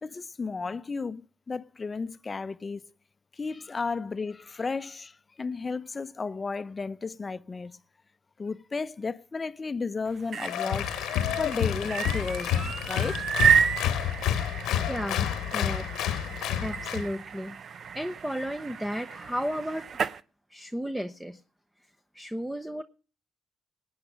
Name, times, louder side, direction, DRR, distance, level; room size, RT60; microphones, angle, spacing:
voice 1, 0.0-2.8 3.4-7.7 8.4-10.9 11.4-13.2, left 4 dB, 30° left, 0.6 m, -33 dB
sound 1, 10.1-20.2, right 8 dB, 55° right, 0.7 m, -31 dB
Applause, 10.4-17.1, left 11 dB, 90° left, 1.1 m, -29 dB
voice 2, 14.6-15.9 16.2-17.6 17.9-19.9 20.5-21.4 22.1-22.8, equal, 5° right, 0.8 m, -34 dB
20.0 x 8.8 x 5.1 m
cardioid pair, 90°, 0 cm